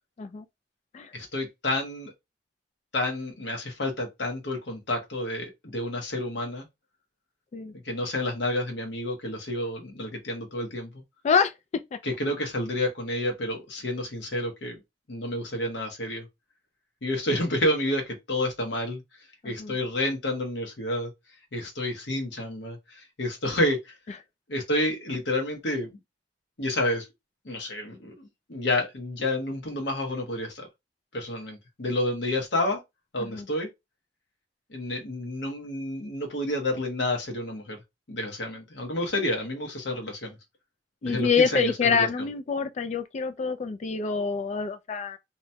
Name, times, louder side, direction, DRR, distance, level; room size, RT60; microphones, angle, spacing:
voice 1, 1.1-2.1 2.9-6.7 7.7-11.0 12.0-14.8 15.1-16.2 17.0-19.0 19.4-21.1 21.5-23.9 24.5-26.0 26.6-27.1 27.4-30.7 31.1-32.8 33.1-33.7 34.7-37.8 38.1-40.4 41.0-42.3, left 1 dB, 80° left, 1.0 m, -29 dB
voice 2, 19.4-19.8 33.2-33.5 41.0-45.2, left 5 dB, 40° left, 0.3 m, -26 dB
2.9 x 2.1 x 2.7 m
head